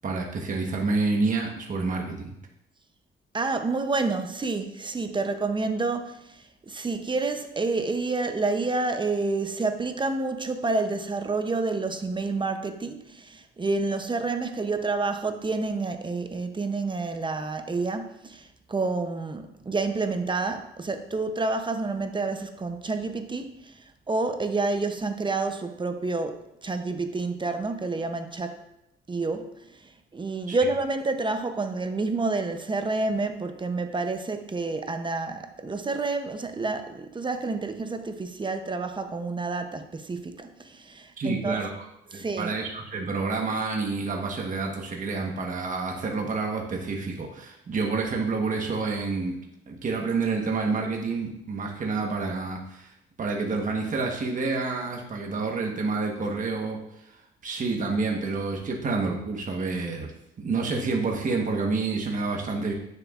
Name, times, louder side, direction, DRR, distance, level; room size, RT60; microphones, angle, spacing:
voice 1, 0.0-2.4 30.5-30.6 41.2-41.9 42.1-49.4 49.7-57.2 57.4-60.1 60.4-62.7, right 3 dB, 40° right, 0 dB, 1.2 m, -28 dB
voice 2, 3.3-28.6 29.1-41.6 42.1-42.5, right 3 dB, 25° right, 7 dB, 0.7 m, -29 dB
9.1 x 6.7 x 2.5 m, 0.80 s
cardioid pair, 90°, 20 cm